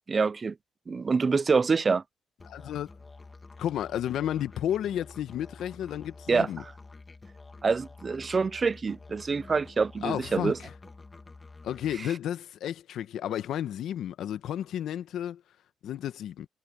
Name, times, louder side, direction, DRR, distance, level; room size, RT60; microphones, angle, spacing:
voice 1, 0.1-0.5 0.9-2.0 6.3-6.7 7.6-10.6, right 4 dB, 35° right, 0.4 m, -26 dB
Musical instrument, 2.4-12.0, left 3 dB, 25° left, 2.3 m, -49 dB
voice 2, 2.5-2.9 3.6-6.6 10.0-10.7 11.6-15.4 15.8-16.5, left 10 dB, 75° left, 1.1 m, -32 dB
cardioid pair, 90°, 0 cm